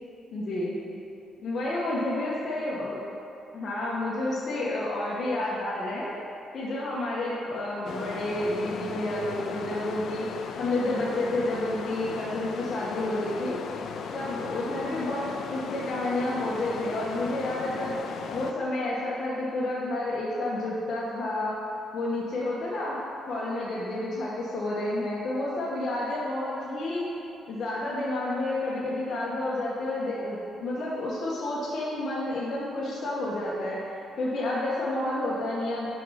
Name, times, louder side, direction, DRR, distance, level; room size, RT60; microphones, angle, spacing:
voice 1, 0.3-0.8 1.4-3.0 3.5-6.1 6.5-10.2 10.6-13.6 14.1-18.0 18.3-21.5 21.9-22.9 23.3-27.0 27.5-35.9, left 1 dB, 50° left, -8 dB, 1.4 m, -30 dB
sound 1, 7.8-18.5, left 5 dB, 65° left, 0.5 m, -36 dB
6.4 x 5.6 x 5.8 m, 2.8 s
cardioid pair, 135°, 0 cm